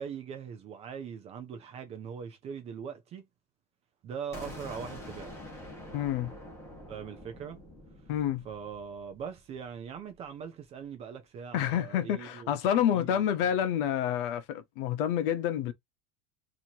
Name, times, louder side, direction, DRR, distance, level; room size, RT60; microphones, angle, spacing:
voice 1, 0.0-3.3 4.0-5.3 6.9-7.6 8.4-12.5 12.9-13.3, right 7 dB, 20° right, 0.4 m, -41 dB
sound 1, 4.3-10.1, left 1 dB, 10° left, 1.4 m, -46 dB
voice 2, 5.9-6.3 8.1-8.4 11.5-15.7, left 10 dB, 55° left, 0.9 m, -28 dB
4.3 x 2.9 x 2.8 m
supercardioid pair, 175°, 32 cm